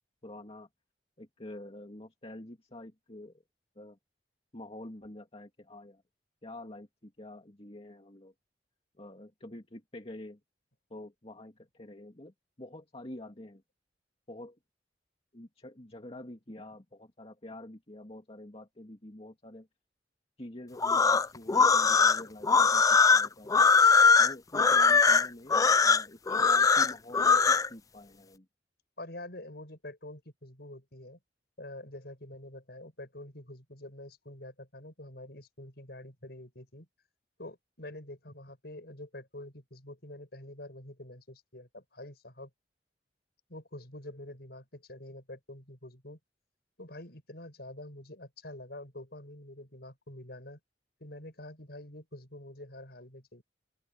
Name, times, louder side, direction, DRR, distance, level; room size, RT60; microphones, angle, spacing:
voice 1, 0.2-0.7 1.2-3.3 3.8-4.0 4.5-6.0 6.4-8.3 9.0-10.4 10.9-13.6 14.3-14.6 15.3-19.7 20.4-23.5 24.2-28.5, left 1 dB, 35° left, 2.3 m, -47 dB
sound 1, 20.8-27.7, left 5 dB, 20° left, 0.3 m, -21 dB
voice 2, 29.0-31.2 31.6-36.9 37.4-42.5 43.5-46.2 46.8-50.6 51.0-53.4, left 1 dB, 65° left, 7.4 m, -46 dB
open air
head